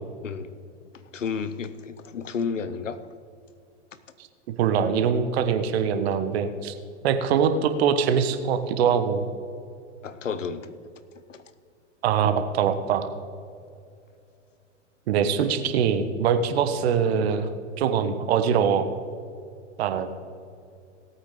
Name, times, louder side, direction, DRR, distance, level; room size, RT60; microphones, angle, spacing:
voice 1, 1.1-3.0 10.0-10.7 11.3-11.4, left 6 dB, 85° left, 13 dB, 0.8 m, -31 dB
voice 2, 4.6-6.7 7.0-9.2 12.0-13.1 15.1-17.5 17.8-18.9 19.8-20.1, right 7 dB, 55° right, 9 dB, 1.2 m, -23 dB
18.0 x 8.7 x 3.8 m, 2.4 s
figure-of-eight pair, 95°, 37 cm